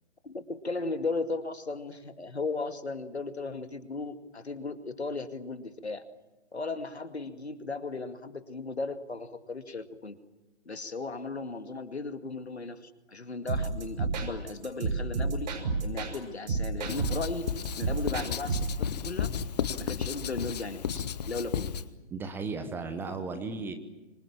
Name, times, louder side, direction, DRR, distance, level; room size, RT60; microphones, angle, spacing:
voice 1, 0.2-6.0 6.5-10.2 10.7-15.5 15.8-17.5 17.8-19.3 19.8-21.7, left 3 dB, 70° left, 8 dB, 2.4 m, -36 dB
sound 1, 13.5-16.2 16.5-18.8, right 4 dB, 40° right, 6.6 m, -31 dB
Writing, 16.9-21.9, left 8 dB, 35° left, 1.2 m, -33 dB
voice 2, 22.1-23.7, right 4 dB, 5° right, 9 dB, 1.0 m, -35 dB
28.5 x 25.5 x 7.4 m, 1.1 s
figure-of-eight pair, 135°, 34 cm